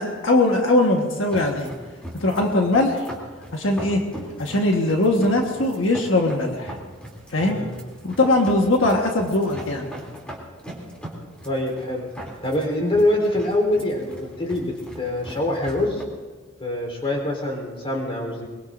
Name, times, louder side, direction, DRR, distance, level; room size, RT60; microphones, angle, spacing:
voice 1, 0.0-1.7 2.2-3.1 3.5-4.0 4.4-6.8 7.3-7.6 8.0-9.9, left 2 dB, 85° left, 1 dB, 1.5 m, -20 dB
sound 1, 1.2-16.0, equal, 5° left, 3.0 m, -40 dB
voice 2, 11.4-12.1 12.4-16.0 16.6-18.5, left 1 dB, 30° left, 0 dB, 3.9 m, -24 dB
22.5 x 22.0 x 2.6 m, 1.4 s
head